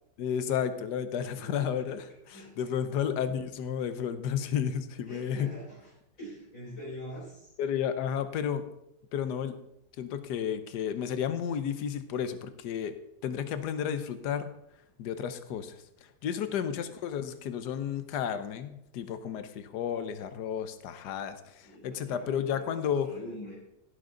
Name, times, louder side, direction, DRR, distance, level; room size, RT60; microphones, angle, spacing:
voice 1, 0.2-5.5 7.6-8.6 9.1-9.6 10.0-13.0 13.2-14.5 15.0-15.8 16.2-23.1, left 8 dB, 70° left, 11 dB, 1.4 m, -32 dB
voice 2, 1.2-2.0 2.3-2.8 5.1-5.9 6.2-7.5 16.7-16.9 21.6-23.6, equal, 50° left, -6 dB, 4.7 m, -45 dB
16.0 x 8.0 x 3.9 m, 0.83 s
omnidirectional pair, 1.9 m